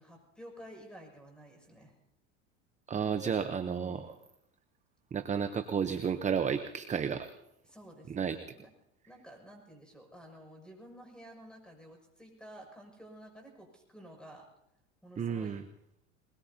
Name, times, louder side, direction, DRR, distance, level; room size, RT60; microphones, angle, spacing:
voice 1, 0.0-2.0 7.6-8.7 9.0-14.5 15.0-15.6, equal, ahead, 2 dB, 6.4 m, -52 dB
voice 2, 2.9-4.1 5.1-7.3 8.1-8.4 15.2-15.6, right 7 dB, 20° right, 9 dB, 0.9 m, -32 dB
22.5 x 21.5 x 2.9 m, 0.80 s
supercardioid pair, 100°, 35 cm